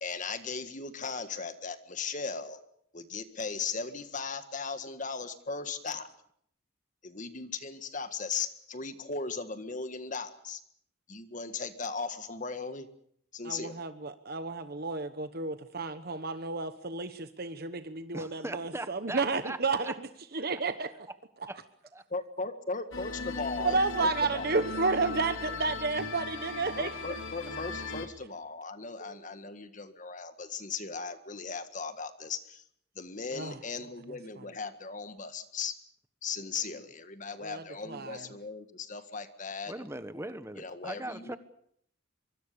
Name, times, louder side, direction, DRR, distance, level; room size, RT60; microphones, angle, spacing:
voice 1, 0.0-2.6 2.9-6.1 7.0-10.6 11.1-12.9 13.3-13.8 22.1-24.6 26.8-32.6 33.0-35.7 36.2-39.7 40.6-41.4, left 4 dB, 40° left, 10 dB, 1.7 m, -37 dB
voice 2, 13.4-21.1 23.6-26.9 29.0-29.2 33.3-33.6 34.4-34.5 37.4-38.3, right 3 dB, 50° right, 10 dB, 1.1 m, -32 dB
voice 3, 18.1-19.6 19.8-19.9 21.5-21.6 21.9-22.0 39.7-41.4, right 1 dB, 15° right, 11 dB, 1.4 m, -39 dB
sound 1, 22.9-28.1, left 3 dB, 75° left, 3.4 m, -38 dB
24.0 x 24.0 x 6.9 m, 0.69 s
head